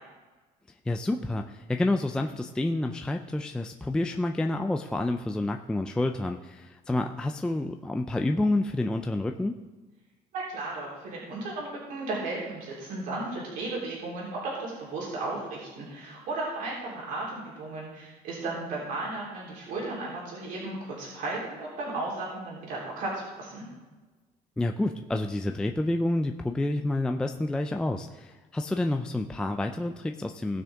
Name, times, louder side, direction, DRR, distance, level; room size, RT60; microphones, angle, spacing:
voice 1, 0.9-9.6 24.6-30.6, left 2 dB, 5° left, 5 dB, 0.3 m, -29 dB
voice 2, 10.3-23.7, right 2 dB, 60° right, -4 dB, 3.5 m, -35 dB
17.5 x 6.2 x 3.5 m, 1.3 s
cardioid pair, 160°, 16 cm